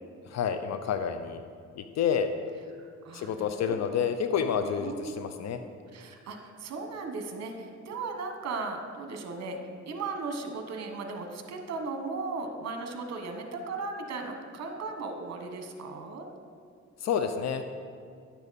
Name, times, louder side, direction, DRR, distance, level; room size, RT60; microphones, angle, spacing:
voice 1, 0.3-1.4 1.8-2.3 3.1-5.6 17.0-17.6, left 7 dB, 60° left, 8 dB, 0.6 m, -29 dB
voice 2, 2.8-4.0 4.3-5.2 5.9-9.6 9.9-16.3, right 3 dB, 60° right, 4 dB, 1.2 m, -37 dB
10.0 x 6.9 x 4.1 m, 2.2 s
cardioid pair, 90°, 30 cm